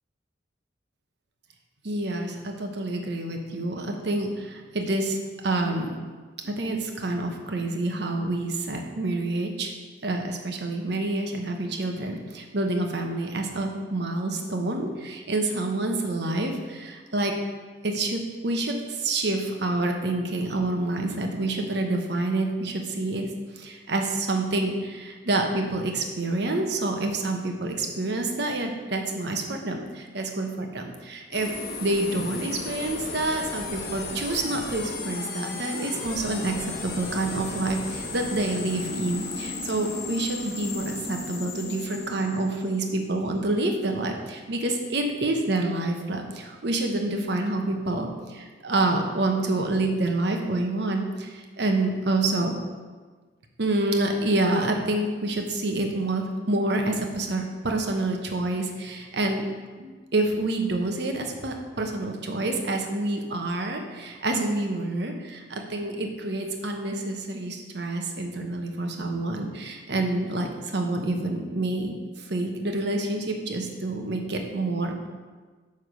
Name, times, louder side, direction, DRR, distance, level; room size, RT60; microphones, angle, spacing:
voice 1, 1.8-5.2 5.4-6.0 6.4-9.7 10.0-17.3 17.8-23.3 23.5-31.5 31.8-52.6 53.6-59.5 59.8-75.1, right 2 dB, 65° right, 3 dB, 1.0 m, -28 dB
sound 1, 31.3-43.3, left 3 dB, 55° left, 1.1 m, -35 dB
9.4 x 3.6 x 6.2 m, 1.4 s
head